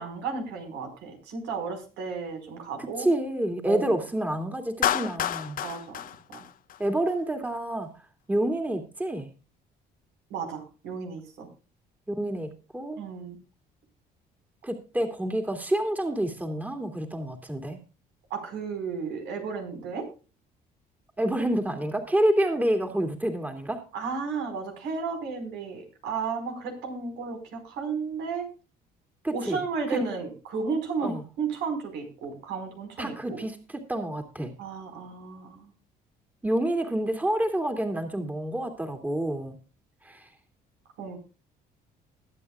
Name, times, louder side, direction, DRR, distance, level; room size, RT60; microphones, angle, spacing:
voice 1, 0.0-3.1 3.6-3.9 5.6-6.0 6.3-6.4 10.3-11.5 13.0-13.4 18.3-20.1 23.9-28.5 29.3-33.4 34.6-35.7 41.0-41.2, right 5 dB, 85° right, 5 dB, 4.7 m, -33 dB
voice 2, 2.8-5.6 6.8-7.9 8.3-9.3 12.1-12.5 12.7-13.0 14.6-17.8 21.2-23.8 29.2-29.6 29.9-30.0 31.0-31.2 33.0-34.5 36.4-39.5 40.0-40.3, right 1 dB, 10° right, 4 dB, 2.4 m, -28 dB
Clapping, 4.8-7.1, left 11 dB, 55° left, 0.9 m, -29 dB
21.0 x 8.7 x 2.3 m, 0.34 s
cardioid pair, 110°, 17 cm